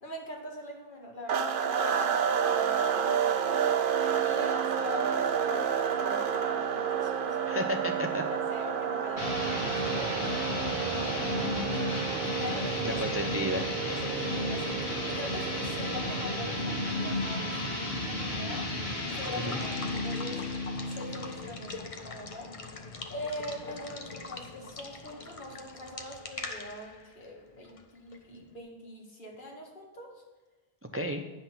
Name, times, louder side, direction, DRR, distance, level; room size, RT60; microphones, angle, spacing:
voice 1, 0.0-3.6 4.2-7.7 8.3-13.0 13.9-18.7 19.1-19.8 20.0-20.4 20.9-22.5 23.1-30.2, left 1 dB, 55° left, -1 dB, 1.9 m, -43 dB
sound 1, 1.3-18.0, right 7 dB, 60° right, 0.8 m, -30 dB
voice 2, 7.5-8.2 12.8-13.7 19.4-19.6 30.9-31.2, equal, 20° right, 4 dB, 0.5 m, -32 dB
sound 2, 9.2-21.7, left 2 dB, 80° left, 2.1 m, -33 dB
Water / Water tap faucet / Liquid, 18.7-28.4, left 3 dB, 35° left, 0.8 m, -43 dB
9.9 x 5.8 x 5.8 m, 1.1 s
omnidirectional pair, 1.0 m